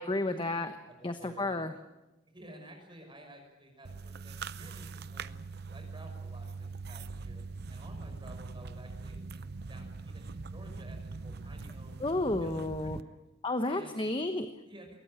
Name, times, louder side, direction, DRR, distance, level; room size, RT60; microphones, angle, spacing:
voice 1, 0.0-0.7 1.0-1.7 12.0-13.0 13.4-14.5, left 2 dB, 25° left, 8 dB, 1.1 m, -31 dB
voice 2, 0.9-1.6 2.2-5.4 5.7-7.4 7.7-12.0 12.4-13.2 13.7-14.0 14.7-15.0, right 1 dB, 25° right, 4 dB, 6.0 m, -53 dB
sound 1, 3.8-13.0, right 4 dB, 60° right, 0.7 m, -42 dB
22.5 x 19.0 x 8.9 m, 1.0 s
head